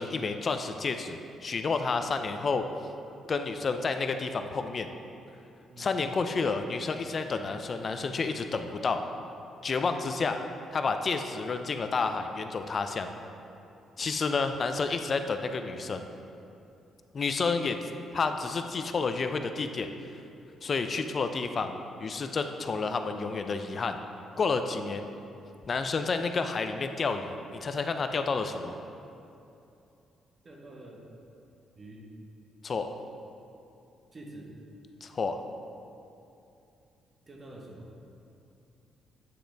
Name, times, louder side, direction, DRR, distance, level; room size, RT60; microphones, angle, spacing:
voice 1, 0.0-2.6 3.3-4.9 5.8-9.0 9.6-10.4 10.7-13.1 14.0-16.0 17.1-17.8 18.1-19.9 20.6-21.8 22.0-24.0 24.4-25.1 25.7-28.8 32.6-32.9 35.0-35.4, left 4 dB, 45° left, 7 dB, 0.4 m, -30 dB
voice 2, 30.4-31.0 31.7-32.1 34.1-34.5 37.3-37.9, right 1 dB, 35° right, -1 dB, 1.1 m, -47 dB
8.3 x 3.8 x 3.4 m, 2.7 s
cardioid pair, 90°, 0 cm